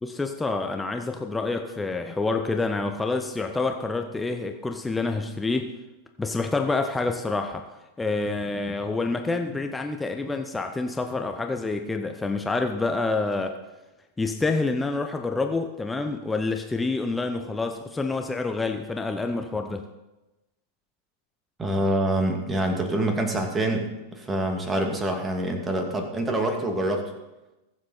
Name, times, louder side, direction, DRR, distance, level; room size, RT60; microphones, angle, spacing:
voice 1, 0.0-5.7 6.2-7.6 8.0-13.6 14.2-19.8, left 3 dB, 10° left, 5 dB, 0.8 m, -27 dB
voice 2, 21.6-27.1, right 1 dB, 15° right, 4 dB, 2.3 m, -26 dB
21.5 x 7.6 x 4.3 m, 1.0 s
figure-of-eight pair, 90°, 0 cm